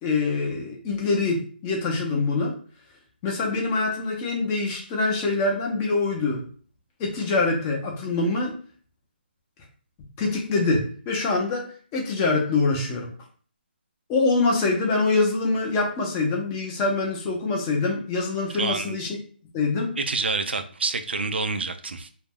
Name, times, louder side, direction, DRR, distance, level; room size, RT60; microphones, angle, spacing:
voice 1, 0.0-2.5 3.2-6.4 7.0-8.5 10.2-13.1 14.1-19.1 19.5-20.0, left 3 dB, 15° left, -1 dB, 0.5 m, -24 dB
voice 2, 18.6-19.0 20.0-22.1, right 3 dB, 85° right, 9 dB, 0.4 m, -27 dB
2.3 x 2.1 x 3.4 m, 0.43 s
hypercardioid pair, 165°, 6 cm